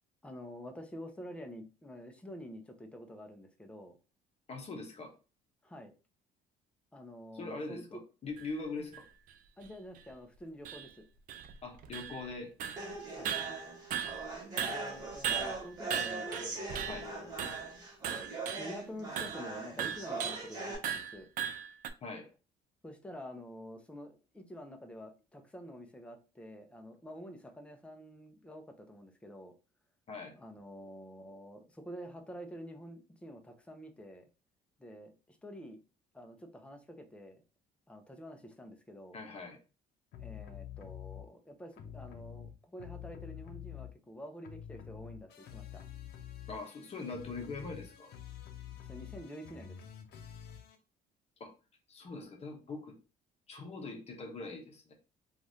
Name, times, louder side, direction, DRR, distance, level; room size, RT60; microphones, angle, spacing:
voice 1, 0.2-4.0 5.6-5.9 6.9-7.8 8.8-8.9 9.6-11.0 13.1-13.4 14.7-17.3 18.6-21.3 22.8-29.5 30.4-34.3 34.8-35.8 36.1-37.4 37.9-39.2 40.2-45.8 48.8-49.8, equal, 5° left, 4 dB, 0.6 m, -48 dB
voice 2, 4.5-5.1 7.3-9.0 11.6-12.5 16.9-17.1 22.0-22.3 30.1-30.3 39.1-39.6 46.5-48.1 51.4-51.5 51.9-53.0 53.5-54.9, left 3 dB, 40° left, 3 dB, 0.8 m, -42 dB
sound 1, 8.4-8.5 8.9-9.0 9.6-9.7 9.9-10.0 10.6-10.9 11.3-12.3 12.6-12.9 13.2-14.3 14.6-17.1 17.4-17.7 18.0-18.7 19.2-19.4 19.8-20.5 20.8-21.9, right 9 dB, 55° right, 0.4 m, -37 dB
sound 2, 12.8-20.7, right 2 dB, 25° right, 1.3 m, -41 dB
sound 3, 40.1-41.2 41.7-44.1 44.4-50.8, left 10 dB, 75° left, 0.6 m, -47 dB
3.1 x 2.4 x 2.7 m, 0.32 s
cardioid pair, 110°, 17 cm